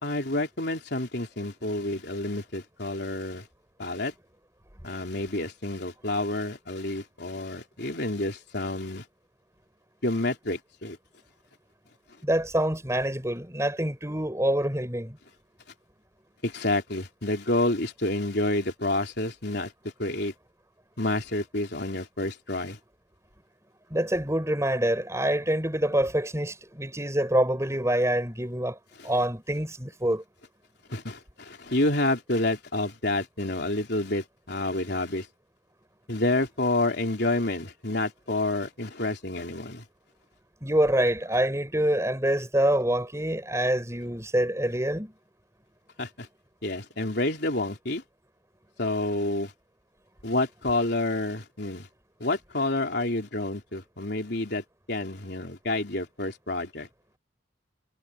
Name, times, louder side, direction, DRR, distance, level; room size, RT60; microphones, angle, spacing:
voice 1, 0.0-3.5 3.8-4.1 4.8-9.0 10.0-11.0 16.4-19.7 20.0-20.3 21.0-22.8 29.0-29.1 30.9-35.3 36.1-39.8 46.0-46.3 46.6-48.0 48.8-49.5 50.2-51.9 52.2-56.9, left 2 dB, 55° left, 3.8 m, -29 dB
voice 2, 12.2-15.2 23.9-28.8 29.0-30.2 40.6-45.1, right 1 dB, 15° right, 4.7 m, -26 dB
head